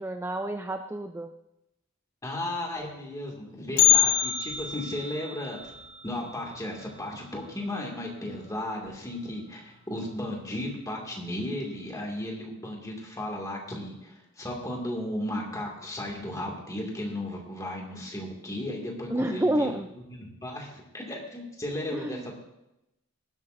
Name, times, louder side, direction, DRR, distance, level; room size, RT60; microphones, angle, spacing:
voice 1, 0.0-1.3 19.1-19.9 21.9-22.3, right 1 dB, 10° right, 7 dB, 0.3 m, -29 dB
voice 2, 2.2-5.7 6.0-19.8 20.1-22.3, left 1 dB, 15° left, 0 dB, 2.1 m, -35 dB
Bell, 3.8-7.9 8.1-8.2 8.7-8.8 9.6-9.7 10.5-10.8 11.1-11.2, left 11 dB, 60° left, 2.0 m, -27 dB
18.5 x 11.5 x 2.6 m, 0.90 s
head